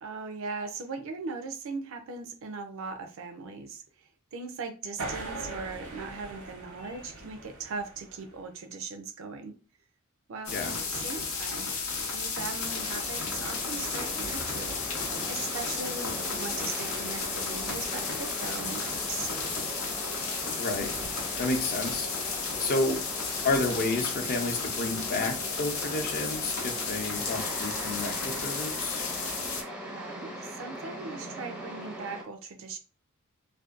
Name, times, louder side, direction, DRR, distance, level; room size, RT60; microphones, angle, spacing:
voice 1, 0.0-3.8 4.3-9.5 10.3-11.7 12.1-14.8 15.3-19.3 29.8-32.8, right 4 dB, 70° right, 7 dB, 0.4 m, -39 dB
sound 1, 5.0-8.5, right 2 dB, 90° right, 0.9 m, -41 dB
sound 2, 10.5-29.6, left 4 dB, 85° left, 0.6 m, -33 dB
sound 3, 12.6-32.2, equal, 5° right, 0.5 m, -41 dB
voice 2, 20.6-20.9 21.4-22.1 22.6-23.0 23.4-29.0, left 2 dB, 45° left, 4 dB, 0.5 m, -30 dB
2.5 x 2.2 x 2.4 m, 0.37 s
head